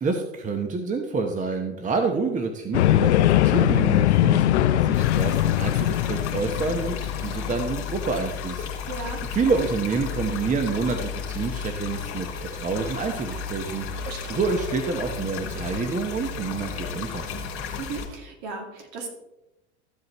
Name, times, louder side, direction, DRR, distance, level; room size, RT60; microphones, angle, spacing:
voice 1, 0.0-8.9 9.3-14.0 14.3-17.3, right 4 dB, 20° right, 5 dB, 1.0 m, -28 dB
sound 1, 2.7-8.0, left 14 dB, 80° left, 0.5 m, -21 dB
sound 2, 4.9-18.1, left 6 dB, 40° left, 2.6 m, -33 dB
voice 2, 8.9-9.2 14.0-14.4 17.8-19.1, right 4 dB, 55° right, 1 dB, 2.6 m, -36 dB
14.0 x 7.8 x 3.1 m, 0.92 s
hypercardioid pair, 85°, 34 cm